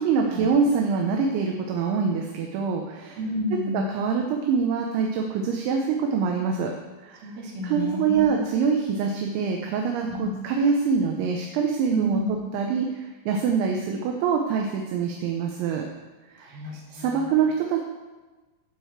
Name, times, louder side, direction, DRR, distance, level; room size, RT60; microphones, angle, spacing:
voice 1, 0.0-3.2 3.7-6.7 7.0-7.2 7.6-12.2 12.5-15.9 16.9-17.8, right 6 dB, 80° right, 2 dB, 3.2 m, -25 dB
voice 2, 3.2-3.8 7.2-8.5 10.1-10.3 11.9-12.3 16.4-17.3, left 1 dB, 55° right, -4 dB, 4.4 m, -31 dB
15.5 x 5.3 x 7.3 m, 1.2 s
omnidirectional pair, 5.5 m